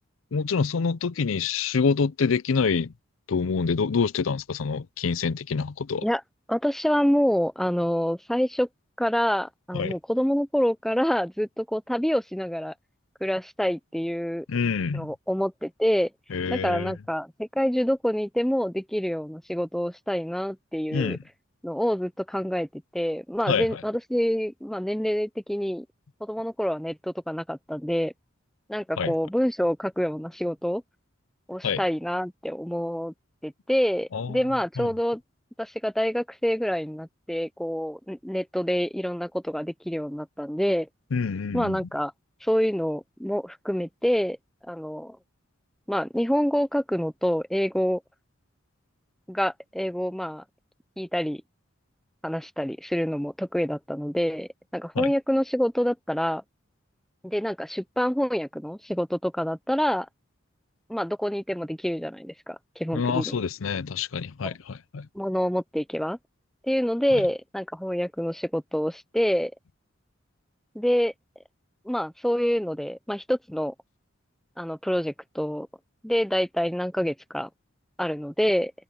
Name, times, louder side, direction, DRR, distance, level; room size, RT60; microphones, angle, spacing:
voice 1, 0.3-2.9 3.3-6.1 9.7-9.9 14.5-15.1 16.3-16.9 20.9-21.2 23.5-23.7 29.0-29.1 31.6-31.8 34.1-34.4 34.8-34.9 41.1-41.8 55.0-55.1 62.9-65.1 67.1-67.2, left 5 dB, 90° left, 0.6 m, -26 dB
voice 2, 6.5-8.7 9.0-12.7 13.2-14.5 14.9-16.1 16.5-21.2 21.6-25.9 26.2-28.1 28.7-30.8 31.5-33.1 33.4-35.2 35.6-40.9 41.5-42.1 42.4-44.4 44.7-45.2 45.9-48.0 49.3-50.4 51.0-51.4 52.2-56.4 57.2-60.1 60.9-63.3 64.4-64.5 65.1-66.2 66.7-69.5 70.8-71.1 71.9-73.7 74.6-75.7 76.0-77.5 78.0-78.7, equal, ahead, 0.4 m, -27 dB
head